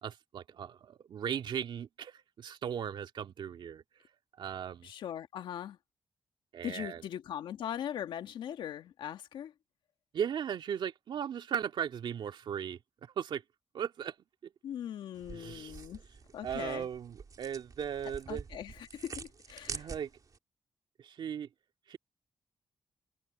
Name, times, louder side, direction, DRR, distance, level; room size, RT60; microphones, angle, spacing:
voice 1, 0.0-3.8 4.4-4.9 6.5-7.0 10.1-13.4 13.7-14.1 14.4-14.5 15.3-15.9 16.4-18.5 19.7-20.1 21.0-21.5 21.9-22.0, right 8 dB, 70° right, 2.2 m, -37 dB
voice 2, 4.8-5.8 6.6-9.5 14.6-16.0 16.3-16.9 18.3-19.9, left 10 dB, 80° left, 1.9 m, -40 dB
sound 1, 15.2-20.4, right 5 dB, 45° right, 3.1 m, -46 dB
supercardioid pair, 60°, 8 cm